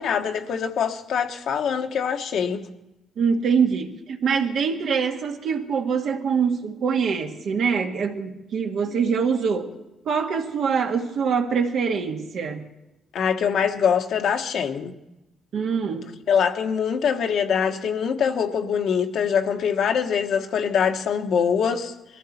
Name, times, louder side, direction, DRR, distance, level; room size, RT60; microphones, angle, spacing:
voice 1, 0.0-2.6 13.1-14.9 16.3-21.9, left 7 dB, 70° left, 1.3 m, -23 dB
voice 2, 3.2-9.7 10.1-12.7 15.5-16.1, right 6 dB, 70° right, 1.8 m, -24 dB
21.5 x 15.0 x 4.4 m
cardioid pair, 90°, 0 cm